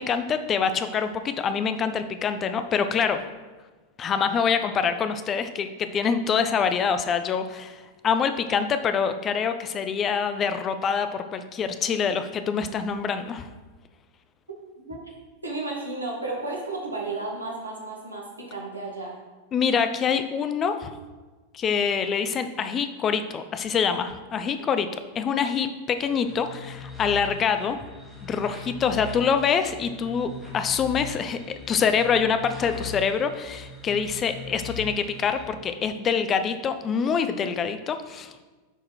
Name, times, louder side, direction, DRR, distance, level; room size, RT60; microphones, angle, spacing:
voice 1, 0.0-3.3 4.0-13.5 19.5-20.9 21.5-24.9 25.1-27.8 28.2-38.4, left 6 dB, 25° left, 9 dB, 0.6 m, -25 dB
voice 2, 15.4-19.2 24.6-24.7, right 2 dB, 80° right, -2 dB, 2.0 m, -33 dB
sound 1, 26.0-35.5, left 4 dB, 10° left, 2.3 m, -40 dB
8.7 x 4.9 x 4.6 m, 1.3 s
figure-of-eight pair, 90°, 0 cm